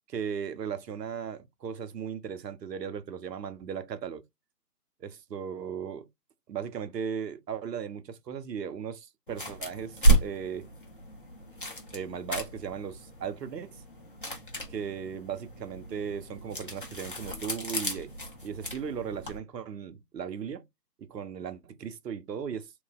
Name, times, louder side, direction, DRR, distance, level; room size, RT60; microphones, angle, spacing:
voice 1, 0.1-4.2 5.0-6.1 6.5-10.7 11.9-13.8 14.7-18.1 18.4-20.7 21.0-22.7, right 7 dB, 85° right, 0.6 m, -37 dB
sound 1, 9.3-19.4, right 2 dB, 35° left, 0.5 m, -31 dB
3.0 x 2.1 x 2.2 m
figure-of-eight pair, 160°, 48 cm